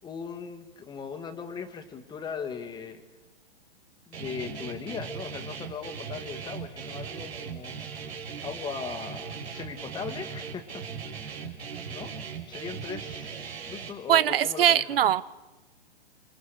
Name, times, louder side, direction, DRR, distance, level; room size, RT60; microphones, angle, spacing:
voice 1, 0.0-3.0 4.1-7.8 8.4-10.8 11.2-11.5 11.9-12.1 12.5-14.8, left 6 dB, 15° left, 7 dB, 2.0 m, -39 dB
Guitar, 4.1-13.9, right 6 dB, 85° right, 5.3 m, -38 dB
sound 1, 8.7-10.9, right 10 dB, 40° right, 5.6 m, -53 dB
voice 2, 14.1-15.2, right 10 dB, 65° right, 18 dB, 0.9 m, -21 dB
28.5 x 27.0 x 4.9 m, 1.1 s
hypercardioid pair, 145°, 31 cm